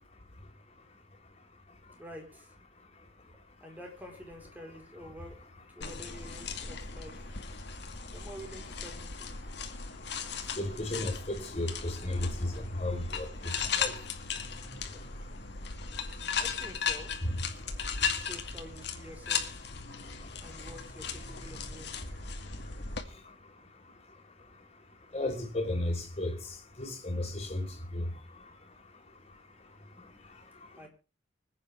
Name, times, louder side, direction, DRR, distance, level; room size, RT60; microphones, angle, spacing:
voice 1, 2.0-2.5 3.6-7.3 8.1-9.4 16.4-17.1 18.0-19.6 20.4-21.9 30.8-30.9, equal, 10° right, 4.1 m, -48 dB
sound 1, 5.8-23.0, left 6 dB, 65° left, 2.2 m, -37 dB
voice 2, 10.6-13.3 13.5-13.9 17.2-17.3 25.1-26.3 26.8-27.6 27.9-28.1, left 1 dB, 35° left, 4.1 m, -33 dB
25.5 x 8.9 x 3.5 m
head